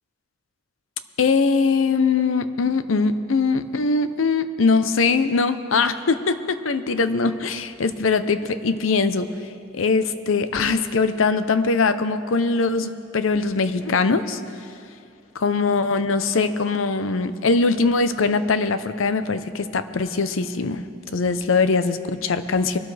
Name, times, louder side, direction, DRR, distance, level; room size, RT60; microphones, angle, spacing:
voice 1, 1.2-9.3 9.7-14.4 15.4-20.9 21.1-22.8, left 4 dB, 85° left, 11 dB, 0.7 m, -21 dB
23.0 x 12.5 x 3.3 m, 2.4 s
head